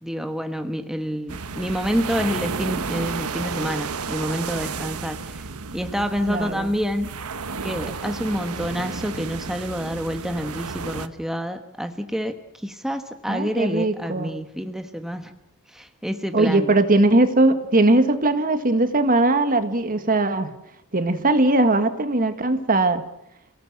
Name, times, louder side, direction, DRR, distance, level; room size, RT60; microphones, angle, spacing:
voice 1, 0.0-5.4 5.7-7.1 7.6-15.3 15.7-16.7, equal, ahead, 6 dB, 1.3 m, -28 dB
sound 1, 1.3-11.1, right 4 dB, 80° right, 1.1 m, -32 dB
voice 2, 6.3-6.7 13.3-14.3 16.3-20.5 20.9-23.0, right 2 dB, 40° right, 9 dB, 1.7 m, -20 dB
29.5 x 18.0 x 7.6 m, 0.85 s
head